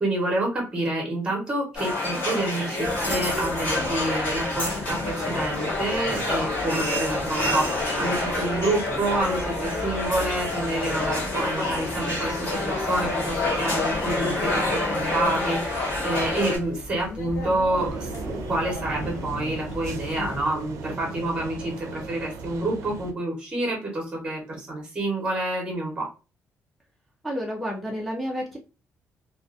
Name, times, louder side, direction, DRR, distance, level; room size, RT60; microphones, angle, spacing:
voice 1, 0.0-7.6 8.0-26.1, right 2 dB, 15° right, 0 dB, 0.9 m, -28 dB
sound 1, 1.7-16.6, left 2 dB, 50° left, 1.5 m, -27 dB
sound 2, 2.8-20.4, left 2 dB, 90° left, 0.6 m, -38 dB
sound 3, 17.8-23.1, right 5 dB, 80° right, 0.4 m, -37 dB
voice 2, 27.2-28.6, equal, ahead, -2 dB, 0.4 m, -30 dB
2.4 x 2.3 x 2.4 m, 0.30 s
cardioid pair, 175°, 5 cm